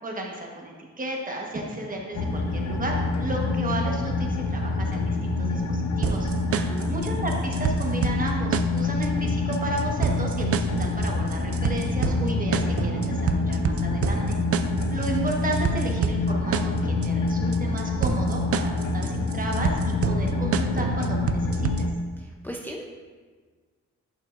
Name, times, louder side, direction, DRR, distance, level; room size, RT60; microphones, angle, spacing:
voice 1, 0.0-6.3 6.9-14.4 14.9-21.9, right 1 dB, 30° right, 0 dB, 1.3 m, -33 dB
sound 1, 2.2-21.9, left 2 dB, 75° left, 0.7 m, -26 dB
sound 2, 6.0-22.0, right 7 dB, 55° right, 0.4 m, -29 dB
voice 2, 6.5-6.9 22.2-22.8, equal, 5° left, -2 dB, 0.6 m, -37 dB
11.0 x 5.5 x 2.6 m, 1.5 s
cardioid pair, 95°, 29 cm